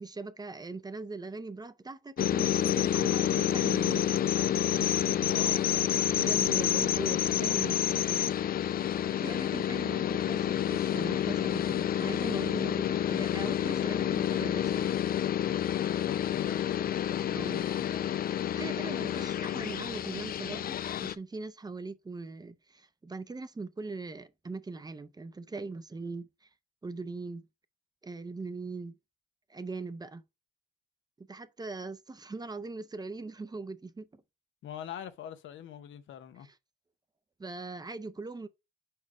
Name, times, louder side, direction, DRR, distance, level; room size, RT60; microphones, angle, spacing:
voice 1, 0.0-4.2 6.1-8.4 9.2-14.9 17.3-17.7 18.6-26.5 26.8-27.5 28.0-29.0 29.5-30.2 31.2-34.2 36.4-36.5 37.4-38.5, right 3 dB, 20° right, 0.6 m, -41 dB
sound 1, 2.2-21.1, left 10 dB, 50° left, 0.4 m, -29 dB
voice 2, 5.1-5.7 9.8-9.9 16.0-18.1 18.9-19.2 34.6-36.5, left 9 dB, 75° left, 0.8 m, -44 dB
4.8 x 4.4 x 4.7 m
cardioid pair, 90°, 20 cm